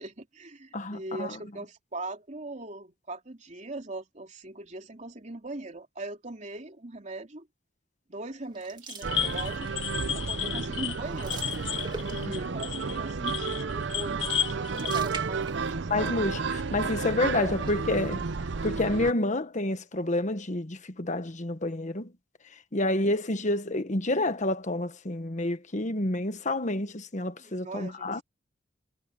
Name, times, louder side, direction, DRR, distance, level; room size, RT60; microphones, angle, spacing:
voice 1, 0.0-7.5 8.1-9.7 10.1-11.5 11.9-16.2 17.3-17.7 22.8-23.1 27.4-28.2, right 2 dB, 40° right, 3.1 m, -40 dB
voice 2, 0.7-1.4 12.1-12.3 15.9-18.2 18.6-22.1 22.7-28.2, left 2 dB, 40° left, 1.3 m, -29 dB
Splashing Water on Face over Sink, 8.5-9.9 10.3-10.5 10.8-12.5 14.3-16.1 16.4-16.5 17.4-18.2, right 3 dB, 25° right, 2.4 m, -44 dB
sound 1, 8.9-15.0, left 10 dB, 85° left, 1.4 m, -33 dB
sound 2, 9.0-19.1, right 5 dB, 65° right, 0.6 m, -32 dB
head